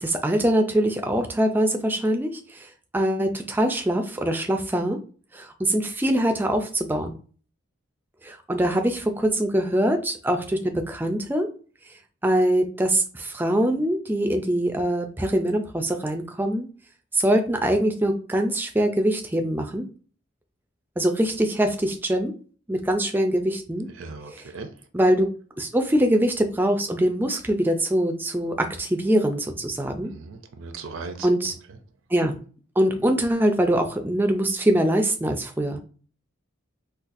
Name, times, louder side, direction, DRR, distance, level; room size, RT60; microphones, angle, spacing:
voice 1, 0.0-2.7 2.9-5.0 5.3-7.1 8.2-11.5 12.2-16.7 17.1-19.9 21.0-22.3 22.7-23.9 24.3-24.4 24.9-25.3 25.6-30.1 31.2-31.5 32.1-32.4 32.8-35.8, right 1 dB, 10° right, 0.3 m, -23 dB
voice 2, 24.0-24.7 30.0-31.3, right 4 dB, 75° right, 0.5 m, -38 dB
4.0 x 2.3 x 2.5 m
head